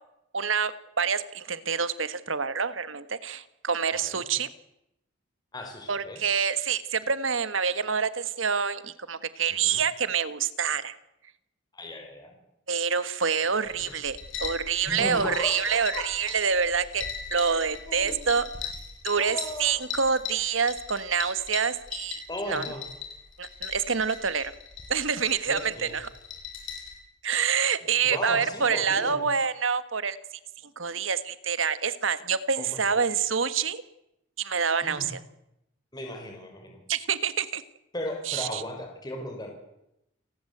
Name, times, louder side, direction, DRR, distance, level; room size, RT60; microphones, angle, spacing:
voice 1, 0.3-4.5 5.9-11.0 12.7-18.5 19.0-22.2 22.5-22.6 23.4-24.5 24.9-26.1 27.2-30.2 30.8-33.8 34.4-35.2 36.9-37.6 38.3-38.6, right 6 dB, 85° right, 13 dB, 1.6 m, -27 dB
voice 2, 5.5-6.2 9.5-9.8 11.7-12.4 13.7-13.9 14.8-16.1 17.9-18.3 19.2-19.8 22.3-22.8 25.5-26.0 28.0-29.2 32.6-33.0 34.8-35.1 35.9-36.8 37.9-39.5, left 1 dB, 20° left, 3 dB, 4.9 m, -36 dB
sound 1, 13.6-27.0, left 6 dB, 75° left, 7.7 m, -39 dB
29.5 x 19.5 x 8.1 m, 0.85 s
head